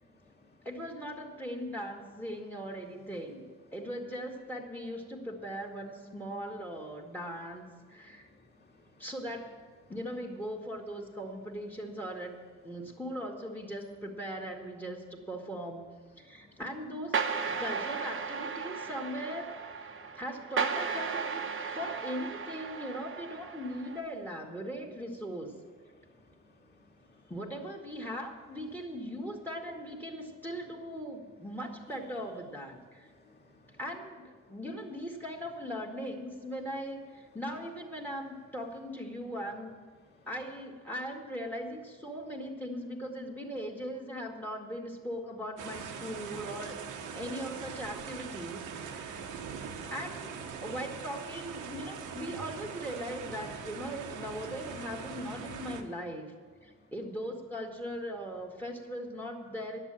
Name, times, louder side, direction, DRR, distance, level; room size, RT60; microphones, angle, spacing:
voice 1, 0.0-0.6 8.0-9.0 16.2-16.6 20.0-20.1 25.9-27.3 33.1-33.8 40.1-40.3 49.8-49.9, left 2 dB, 35° left, -1 dB, 2.2 m, -62 dB
voice 2, 0.6-3.4 3.7-8.3 9.0-9.5 9.9-12.4 12.6-15.9 16.2-25.5 27.3-33.1 33.8-39.7 40.3-49.2 49.9-56.3 56.6-59.8, equal, 5° left, 2 dB, 2.0 m, -39 dB
sound 1, 17.1-24.0, right 5 dB, 45° right, 1.0 m, -35 dB
sound 2, 45.6-55.8, right 6 dB, 90° right, 1.2 m, -42 dB
11.0 x 7.4 x 8.9 m, 1.5 s
cardioid pair, 90°, 30 cm